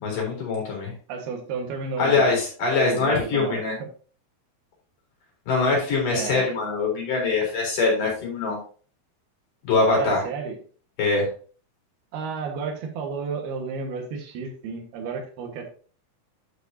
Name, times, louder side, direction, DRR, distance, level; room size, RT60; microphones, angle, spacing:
voice 1, 0.0-0.9 2.0-3.8 5.5-8.6 9.6-10.2 11.0-11.3, left 3 dB, 60° left, -2 dB, 5.4 m, -23 dB
voice 2, 1.1-2.3 2.8-3.9 6.1-6.5 9.9-10.6 12.1-15.7, right 5 dB, 90° right, 3 dB, 3.6 m, -32 dB
11.5 x 7.0 x 2.8 m, 0.40 s
omnidirectional pair, 4.4 m